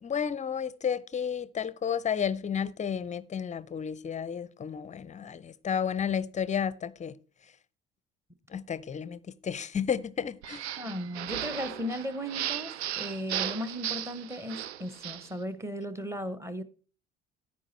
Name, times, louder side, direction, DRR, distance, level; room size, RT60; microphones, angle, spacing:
voice 1, 0.0-7.2 8.5-10.7, left 7 dB, 20° left, 0.5 m, -32 dB
sound 1, 10.4-15.3, right 11 dB, 80° right, 0.5 m, -36 dB
voice 2, 10.8-16.6, equal, 10° right, 1.0 m, -36 dB
9.9 x 8.4 x 4.3 m
figure-of-eight pair, 55°, 32 cm